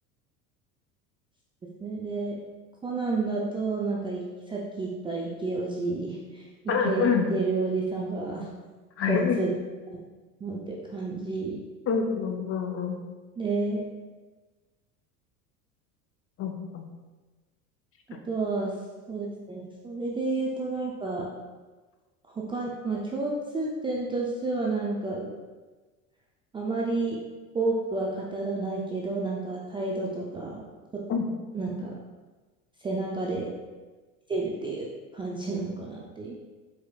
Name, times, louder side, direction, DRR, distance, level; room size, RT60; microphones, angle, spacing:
voice 1, 1.8-2.4 2.8-6.5 6.8-8.5 9.0-9.5 10.4-11.6 13.4-13.8 18.3-18.7 19.1-21.3 22.3-25.3 26.5-27.2 27.5-30.6 31.5-31.9 32.8-33.5 34.3-34.9 35.1-36.4, right 3 dB, 10° right, -4 dB, 0.4 m, -30 dB
voice 2, 6.7-7.3 9.0-9.3 11.9-13.0 16.4-16.8 31.1-31.2, left 6 dB, 30° left, 3 dB, 0.6 m, -26 dB
4.5 x 4.2 x 2.3 m, 1.3 s
hypercardioid pair, 85°, 44 cm